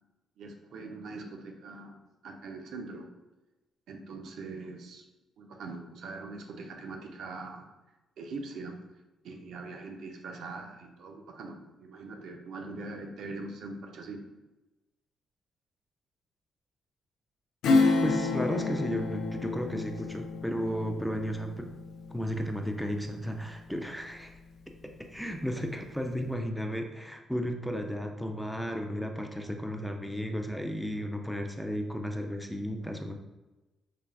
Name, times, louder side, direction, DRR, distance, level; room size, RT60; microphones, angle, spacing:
voice 1, 0.4-3.1 3.9-5.1 5.4-7.7 8.2-8.8 9.2-14.3, right 3 dB, 75° right, 3 dB, 0.4 m, -42 dB
Acoustic guitar / Strum, 17.6-23.8 24.2-24.3, left 3 dB, 80° left, 0.3 m, -30 dB
voice 2, 18.0-21.7 22.1-24.4 25.1-33.1, equal, ahead, 3 dB, 0.3 m, -34 dB
3.3 x 2.3 x 2.3 m, 1.1 s
cardioid pair, 105°, 0 cm